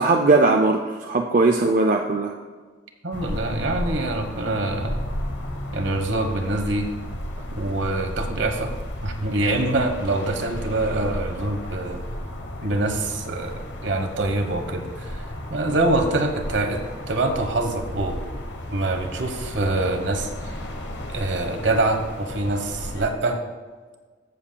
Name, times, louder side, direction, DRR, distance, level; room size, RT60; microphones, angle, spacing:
voice 1, 0.0-2.3, right 3 dB, 40° right, 3 dB, 0.4 m, -19 dB
voice 2, 3.0-5.0 5.7-6.9 7.5-8.7 9.0-12.0 12.6-15.2 15.5-16.8 17.1-18.2 18.7-20.5 21.1-23.4, right 2 dB, 65° right, 5 dB, 1.0 m, -25 dB
sound 1, 3.1-23.1, left 1 dB, 60° left, 1.0 m, -33 dB
14.5 x 7.0 x 2.2 m, 1.4 s
head